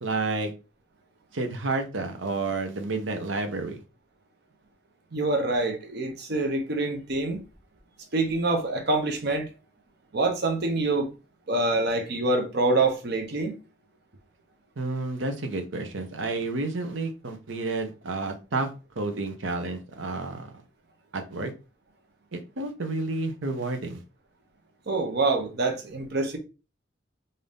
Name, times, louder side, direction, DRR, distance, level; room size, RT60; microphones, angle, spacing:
voice 1, 0.0-0.5 1.3-3.8 14.8-18.7 19.0-20.5 21.1-21.5 22.3-24.0, right 3 dB, 80° right, 0.8 m, -30 dB
voice 2, 5.1-7.4 8.1-9.5 10.1-11.1 11.5-13.6 24.9-26.4, right 2 dB, 60° right, 0.9 m, -26 dB
3.8 x 2.7 x 3.5 m
head